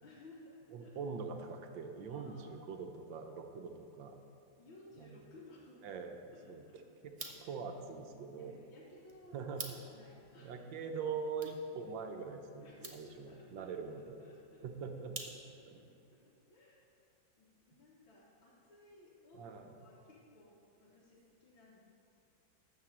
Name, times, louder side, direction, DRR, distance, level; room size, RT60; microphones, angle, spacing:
voice 1, 0.0-1.0 2.1-2.7 4.6-6.0 6.3-7.6 8.3-10.9 12.6-16.9 17.4-21.8, left 2 dB, 90° left, -6 dB, 2.2 m, -59 dB
voice 2, 0.7-4.2 5.0-5.2 5.8-6.2 6.5-6.6 7.5-8.6 9.3-9.6 10.4-12.6 12.9-14.2 14.6-15.1 15.7-15.8 19.3-19.7, right 5 dB, 75° right, 5 dB, 1.5 m, -43 dB
sound 1, 7.0-15.8, right 3 dB, 35° right, 0.5 m, -52 dB
12.5 x 4.7 x 7.3 m, 2.6 s
omnidirectional pair, 2.1 m